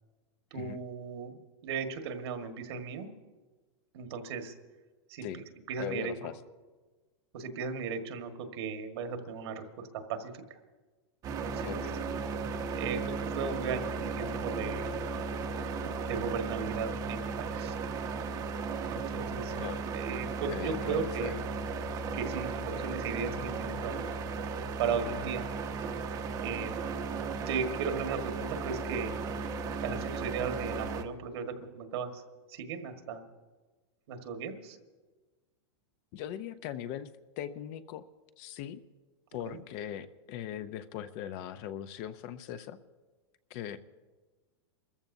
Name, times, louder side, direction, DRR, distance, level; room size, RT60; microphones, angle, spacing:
voice 1, 0.5-3.1 3.9-4.5 5.1-6.1 7.3-10.6 11.3-11.8 12.7-14.9 16.1-17.8 18.9-19.5 19.9-21.4 22.1-24.0 24.8-25.5 26.4-26.7 27.5-29.1 29.8-32.2 32.5-33.2 34.1-34.8 39.4-39.6, right 5 dB, 65° right, 5 dB, 1.7 m, -36 dB
voice 2, 5.8-6.4 11.6-11.9 19.6-19.8 20.5-21.3 36.1-37.1 37.4-38.0 38.4-38.8 39.3-42.8 43.5-43.8, left 10 dB, 40° left, 12 dB, 0.6 m, -40 dB
sound 1, 11.2-31.0, right 4 dB, 25° right, 0.8 m, -35 dB
28.5 x 14.5 x 2.7 m, 1.3 s
supercardioid pair, 150°, 14 cm